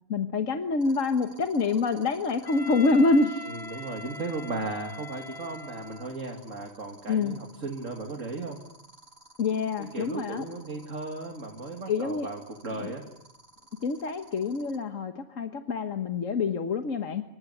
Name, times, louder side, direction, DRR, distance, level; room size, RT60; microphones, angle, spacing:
voice 1, 0.1-3.5 3.7-3.8 7.1-7.4 9.4-10.4 11.9-12.3 12.8-12.9 13.8-17.2, left 4 dB, 80° left, 7 dB, 1.7 m, -26 dB
sound 1, 0.8-14.8, right 2 dB, 50° right, 5.9 m, -53 dB
Wind instrument woodwind instrument, 2.4-6.3, left 2 dB, 40° left, 5.6 m, -42 dB
voice 2, 3.4-8.6 9.8-13.1, right 3 dB, 80° right, 2 dB, 2.9 m, -36 dB
27.5 x 25.0 x 8.0 m, 0.74 s
omnidirectional pair, 1.3 m